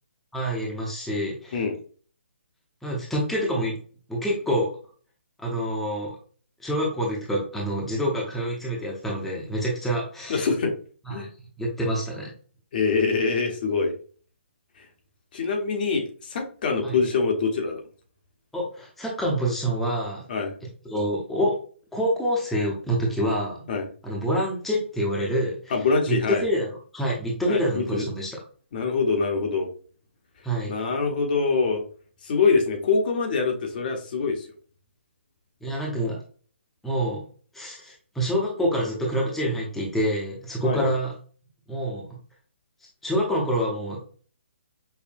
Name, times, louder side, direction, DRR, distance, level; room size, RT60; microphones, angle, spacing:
voice 1, 0.3-1.6 2.8-3.7 4.1-4.7 5.4-6.1 6.6-10.5 11.1-11.3 11.6-12.3 16.8-17.0 18.5-20.2 20.8-21.6 21.9-23.7 24.0-25.7 26.1-26.7 26.9-28.3 30.4-30.7 35.6-36.2 36.8-37.2 37.5-41.1 41.7-42.1 43.0-44.0, equal, 5° left, -4 dB, 0.7 m, -26 dB
voice 2, 10.3-10.7 11.1-11.3 12.7-13.9 14.8-14.9 15.3-17.8 20.3-20.5 23.7-23.9 25.7-26.4 27.5-28.0 28.7-29.7 30.7-31.8 32.2-34.5 40.6-40.9, left 4 dB, 45° left, 3 dB, 0.9 m, -24 dB
5.5 x 2.1 x 2.6 m, 0.42 s
hypercardioid pair, 150°, 7 cm